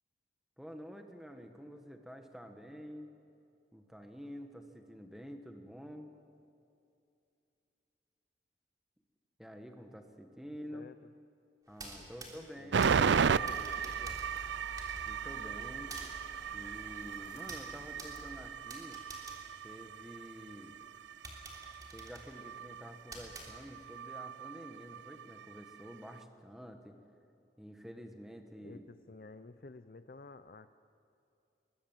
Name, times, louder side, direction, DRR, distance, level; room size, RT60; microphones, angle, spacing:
voice 1, 0.6-3.1 3.7-6.1 9.4-10.9 11.7-13.4 15.0-16.0 16.5-19.0 19.6-20.7 21.9-27.0 27.6-28.9, equal, ahead, 5 dB, 1.5 m, -49 dB
voice 2, 10.7-11.1 12.0-14.2 28.6-30.7, left 3 dB, 50° left, 11 dB, 0.6 m, -53 dB
sound 1, 11.7-20.4 20.8-20.9 21.2-24.0, right 2 dB, 20° right, 3.3 m, -51 dB
sound 2, 12.7-26.2, right 6 dB, 90° right, 0.5 m, -36 dB
sound 3, 12.8-18.5, equal, 20° left, 1.8 m, -52 dB
23.0 x 21.5 x 7.4 m, 2.6 s
head